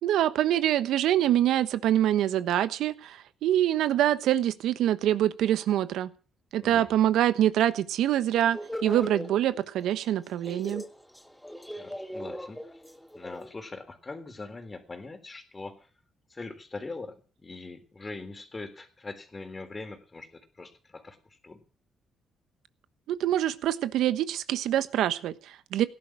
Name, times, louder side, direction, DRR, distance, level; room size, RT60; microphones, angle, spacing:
voice 1, 0.0-6.1 6.5-10.8 23.1-25.9, right 12 dB, 85° right, 13 dB, 1.1 m, -25 dB
sound 1, 8.5-10.0 10.3-13.5, equal, 5° left, 1.9 m, -39 dB
voice 2, 11.8-12.8 13.2-15.8 16.3-21.2 21.4-21.6, left 3 dB, 25° left, 9 dB, 3.5 m, -42 dB
17.5 x 11.0 x 6.2 m, 0.37 s
cardioid pair, 90°, 0 cm